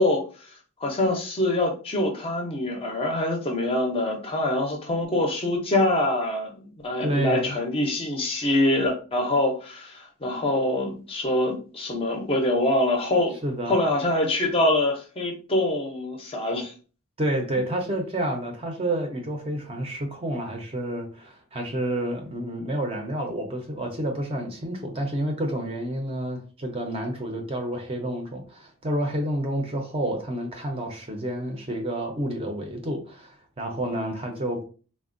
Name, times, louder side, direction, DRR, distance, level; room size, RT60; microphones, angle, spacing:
voice 1, 0.0-13.3 13.7-16.7 17.5-17.7, left 1 dB, 25° left, 0.5 m, -25 dB
voice 2, 7.0-7.6 13.4-13.8 17.2-34.6, right 1 dB, 25° right, 0.5 m, -29 dB
3.4 x 2.1 x 2.5 m
head